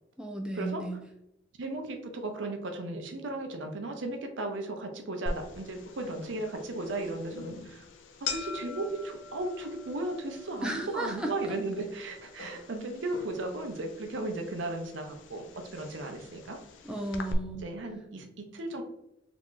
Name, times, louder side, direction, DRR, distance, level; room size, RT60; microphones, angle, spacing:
voice 1, 0.2-1.0 10.6-11.6 16.8-17.6, right 1 dB, 5° right, 2 dB, 0.3 m, -34 dB
voice 2, 1.6-7.8 8.3-16.6 17.6-18.8, right 2 dB, 80° right, 4 dB, 0.6 m, -36 dB
sound 1, 5.3-17.3, left 3 dB, 85° left, 0.4 m, -43 dB
2.9 x 2.5 x 3.6 m, 0.82 s
head